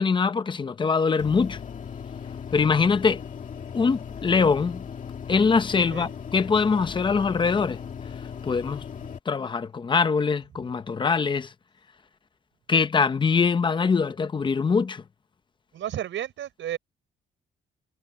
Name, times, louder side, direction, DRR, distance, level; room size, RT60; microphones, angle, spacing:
voice 1, 0.0-1.6 2.5-3.2 3.7-4.8 5.3-7.8 8.4-8.8 9.3-11.5 12.7-15.0, left 5 dB, 25° left, 0.7 m, -23 dB
sound 1, 1.2-9.2, left 7 dB, 40° left, 2.2 m, -38 dB
voice 2, 15.7-16.8, right 11 dB, 75° right, 6.2 m, -32 dB
wide cardioid pair, 175°, 20 cm